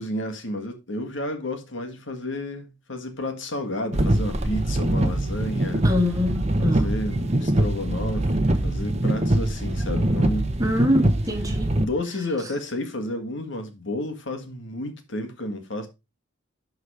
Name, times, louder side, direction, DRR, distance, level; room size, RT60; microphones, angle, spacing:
voice 1, 0.0-5.9 6.6-10.5 11.8-15.9, left 1 dB, 70° left, 1.8 m, -31 dB
sound 1, 3.9-11.8, right 1 dB, 35° right, 1.0 m, -23 dB
voice 2, 5.8-6.9 10.6-11.7, left 1 dB, 15° right, 1.8 m, -24 dB
12.0 x 4.0 x 4.9 m
head